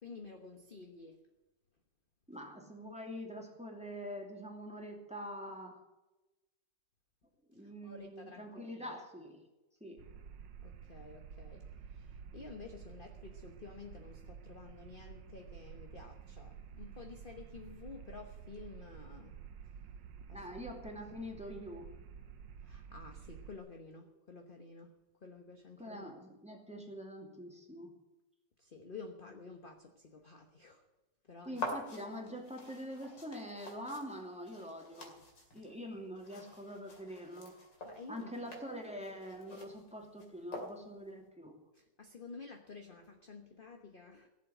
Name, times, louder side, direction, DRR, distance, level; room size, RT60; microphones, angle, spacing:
voice 1, 0.0-1.2 7.6-8.9 10.6-19.3 20.3-20.4 22.6-24.9 25.2-26.0 28.6-30.8 31.2-31.7 37.8-38.5 41.7-44.3, left 4 dB, 35° left, 4 dB, 1.2 m, -51 dB
voice 2, 2.3-5.8 7.5-9.4 9.8-10.0 20.3-21.9 25.8-27.9 31.5-35.2 35.5-37.6 38.1-41.5, equal, 5° right, 1 dB, 2.5 m, -45 dB
sound 1, 10.0-23.6, right 7 dB, 80° right, 1.5 m, -51 dB
sound 2, 31.5-41.1, left 2 dB, 80° left, 3.2 m, -47 dB
16.5 x 7.6 x 9.1 m, 1.0 s
omnidirectional pair, 1.9 m